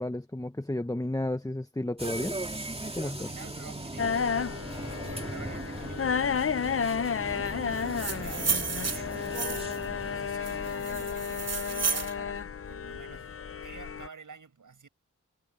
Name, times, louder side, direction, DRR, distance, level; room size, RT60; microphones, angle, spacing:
voice 1, 0.0-2.4 2.9-3.3, left 1 dB, 10° left, 1.2 m, -32 dB
sound 1, 2.0-11.9, right 2 dB, 20° right, 2.5 m, -39 dB
voice 2, 3.0-9.3 9.9-13.4 13.6-14.9, right 5 dB, 80° right, 7.4 m, -49 dB
sound 2, 4.0-14.1, left 6 dB, 45° left, 0.6 m, -32 dB
sound 3, 7.8-9.8 10.4-12.1, right 6 dB, 55° right, 1.1 m, -32 dB
cardioid pair, 55°, 31 cm